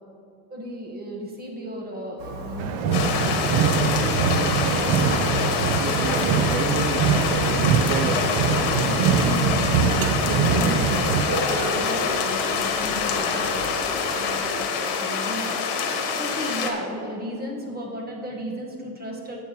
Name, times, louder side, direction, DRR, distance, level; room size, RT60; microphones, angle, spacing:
voice 1, 0.5-19.4, equal, 20° right, 0 dB, 1.4 m, -35 dB
Thunder, 2.2-14.4, right 1 dB, 55° right, 1.8 m, -34 dB
sound 1, 2.6-11.2, right 6 dB, 80° right, 0.8 m, -23 dB
sound 2, 2.9-16.7, left 5 dB, 65° left, 1.4 m, -26 dB
14.5 x 7.8 x 3.0 m, 2.6 s
cardioid pair, 140°, 43 cm